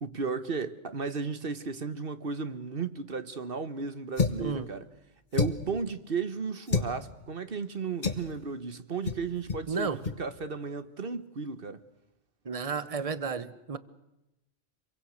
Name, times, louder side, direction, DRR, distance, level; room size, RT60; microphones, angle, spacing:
voice 1, 0.0-4.8 5.3-11.8, right 5 dB, 50° right, 1.4 m, -34 dB
sound 1, 4.2-4.5 5.3-5.7 6.7-6.9 8.0-8.3 9.0-9.2 9.5-9.7 10.0-10.2, left 4 dB, 40° left, 1.6 m, -28 dB
voice 2, 9.7-10.0 12.4-13.8, right 5 dB, 30° right, 1.1 m, -32 dB
26.5 x 23.5 x 6.5 m
omnidirectional pair, 1.3 m